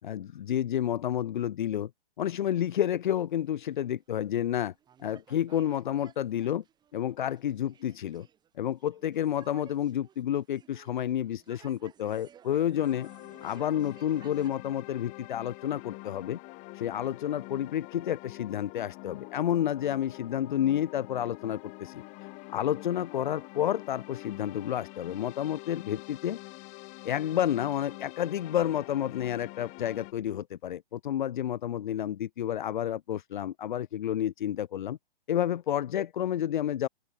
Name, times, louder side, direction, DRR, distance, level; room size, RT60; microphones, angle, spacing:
voice 1, 0.0-1.9 2.2-4.7 5.0-6.6 6.9-8.3 8.6-13.1 13.4-16.4 16.7-22.0 22.5-26.4 27.0-35.0 35.3-36.9, left 10 dB, 50° left, 2.1 m, -30 dB
sound 1, 2.4-4.0 4.4-14.5, right 9 dB, 15° right, 5.5 m, -58 dB
sound 2, 12.8-30.1, left 27 dB, 25° left, 1.7 m, -46 dB
open air
hypercardioid pair, 150°, 30 cm